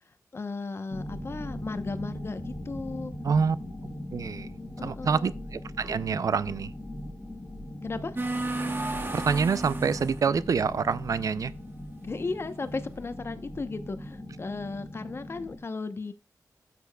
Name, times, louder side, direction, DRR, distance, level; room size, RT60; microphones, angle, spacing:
voice 1, 0.3-3.1 4.8-5.3 7.8-8.2 12.0-16.1, left 3 dB, 40° left, 0.8 m, -35 dB
sound 1, 0.9-15.6, left 1 dB, 15° left, 3.5 m, -39 dB
voice 2, 3.2-3.6 4.1-4.5 4.8-6.7 9.1-11.5, right 5 dB, 65° right, 0.4 m, -26 dB
sound 2, 8.2-10.2, right 2 dB, 35° right, 1.2 m, -32 dB
13.0 x 6.8 x 2.3 m
wide cardioid pair, 115°, 6 cm